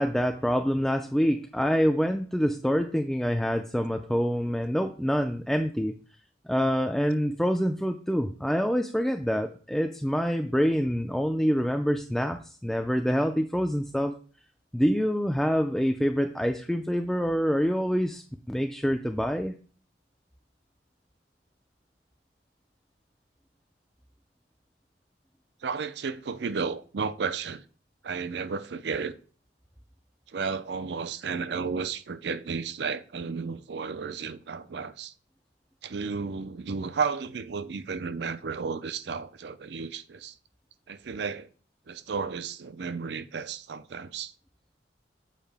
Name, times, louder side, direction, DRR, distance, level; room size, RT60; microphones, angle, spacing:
voice 1, 0.0-5.9 6.5-14.1 14.7-18.2 18.5-19.5, equal, ahead, 0.3 m, -26 dB
voice 2, 25.6-27.6 28.0-29.1 30.3-35.1 35.8-40.3 40.9-41.5 41.9-44.3, right 5 dB, 65° right, 0.5 m, -33 dB
7.4 x 4.7 x 3.5 m
head